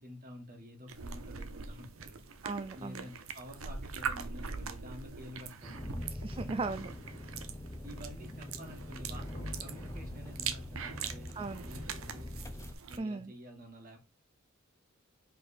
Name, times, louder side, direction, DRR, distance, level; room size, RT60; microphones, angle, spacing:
voice 1, 0.0-2.3 2.7-6.1 7.2-7.3 7.8-12.3 12.9-14.0, equal, 45° right, 4 dB, 1.7 m, -50 dB
sound 1, 0.9-13.0, right 6 dB, 90° right, 0.8 m, -43 dB
voice 2, 2.4-3.1 6.2-7.4 11.3-11.7 13.0-13.3, right 3 dB, 25° right, 10 dB, 0.4 m, -38 dB
Engine, 5.6-12.7, left 1 dB, 15° left, 0.6 m, -43 dB
5.2 x 4.3 x 4.2 m, 0.27 s
head